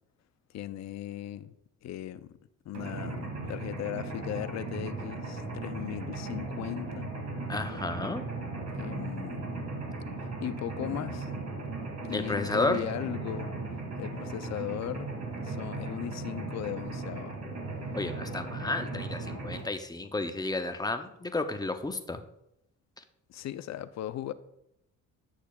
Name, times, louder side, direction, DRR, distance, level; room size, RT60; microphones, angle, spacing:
voice 1, 0.5-1.5 1.8-2.4 2.7-7.1 8.7-9.5 10.4-11.3 12.1-13.5 14.0-15.1 15.4-17.4 23.3-24.3, left 12 dB, 65° left, 0.5 m, -37 dB
Mechanisms, 2.7-19.6, right 3 dB, 65° right, 2.4 m, -37 dB
voice 2, 7.5-8.2 12.1-12.8 17.9-22.2, left 2 dB, 15° left, 0.6 m, -32 dB
10.0 x 6.4 x 2.3 m
cardioid pair, 90°, 30 cm